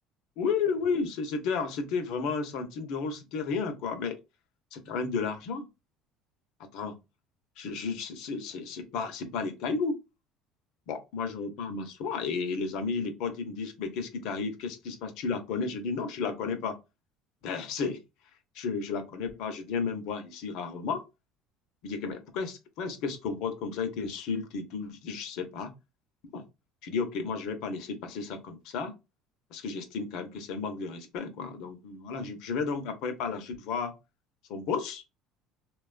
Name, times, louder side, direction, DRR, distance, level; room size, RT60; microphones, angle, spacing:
voice 1, 0.4-4.2 4.7-5.7 6.6-6.9 7.6-10.0 10.9-16.8 17.4-18.0 18.5-21.0 21.8-25.7 26.3-26.4 26.8-28.9 29.5-33.9 34.5-35.0, left 5 dB, 70° left, 0.7 m, -33 dB
3.0 x 2.3 x 2.3 m
supercardioid pair, 110°, 0 cm